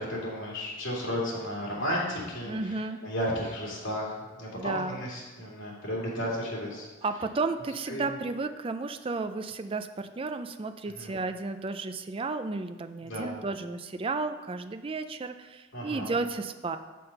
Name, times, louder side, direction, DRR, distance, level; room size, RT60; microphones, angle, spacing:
voice 1, 0.0-6.9 7.9-8.1 11.0-11.1 13.0-13.4 15.7-16.1, equal, 75° left, -6 dB, 2.7 m, -33 dB
voice 2, 2.5-3.0 4.5-5.0 7.0-16.8, right 3 dB, 30° right, 8 dB, 0.4 m, -33 dB
7.4 x 5.9 x 5.4 m, 1.2 s
head